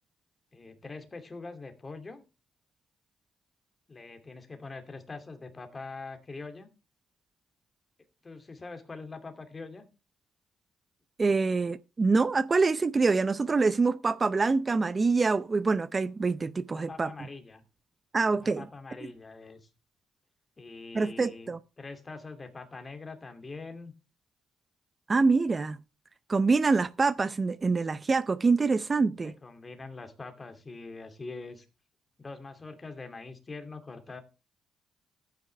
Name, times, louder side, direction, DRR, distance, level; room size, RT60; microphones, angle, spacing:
voice 1, 0.5-2.2 3.9-6.7 8.2-9.9 16.7-17.6 18.4-19.7 20.6-21.5 21.8-23.9 29.2-31.7 32.2-34.2, left 3 dB, 25° left, 2.6 m, -43 dB
voice 2, 11.2-17.1 18.1-18.7 20.9-21.6 25.1-25.8 26.3-29.3, right 4 dB, 30° right, 0.6 m, -25 dB
14.0 x 9.5 x 3.3 m
cardioid pair, 90°, 0 cm